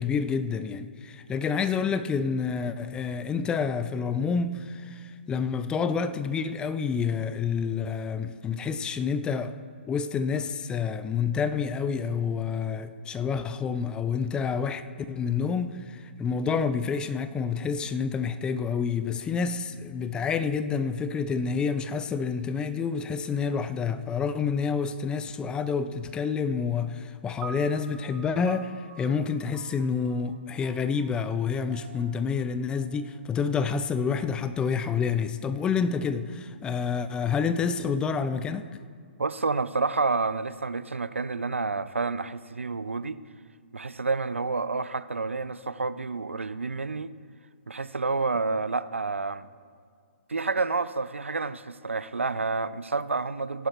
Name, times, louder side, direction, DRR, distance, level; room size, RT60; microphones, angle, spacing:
voice 1, 0.0-9.6 9.9-14.8 15.1-38.7, left 6 dB, 15° left, 0.4 m, -28 dB
sound 1, 27.4-33.9, right 6 dB, 25° right, 0.7 m, -48 dB
voice 2, 39.2-43.2 43.7-47.1 47.7-49.5 50.3-53.7, right 4 dB, 90° right, 0.4 m, -29 dB
17.0 x 11.0 x 3.0 m
figure-of-eight pair, 130°, 7 cm